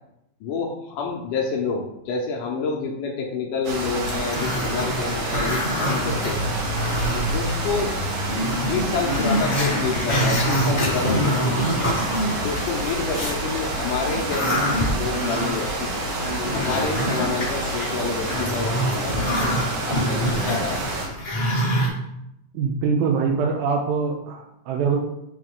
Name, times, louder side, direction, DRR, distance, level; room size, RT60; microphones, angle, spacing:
voice 1, 0.4-6.4 7.3-8.0 8.6-11.9 12.4-16.1 16.5-20.9, left 5 dB, 75° left, -1 dB, 2.0 m, -28 dB
sound 1, 3.6-21.1, right 2 dB, 65° right, 2.2 m, -28 dB
Growling, 4.0-7.5 7.9-8.0 8.3-13.4 13.8-21.9, equal, 55° left, 0.5 m, -26 dB
sound 2, 6.0-8.7 9.4-9.5 9.9-11.2, left 1 dB, 30° right, 1.4 m, -30 dB
voice 2, 22.5-25.0, right 5 dB, 80° right, 1 dB, 2.4 m, -23 dB
8.9 x 3.3 x 3.7 m, 0.82 s
omnidirectional pair, 4.5 m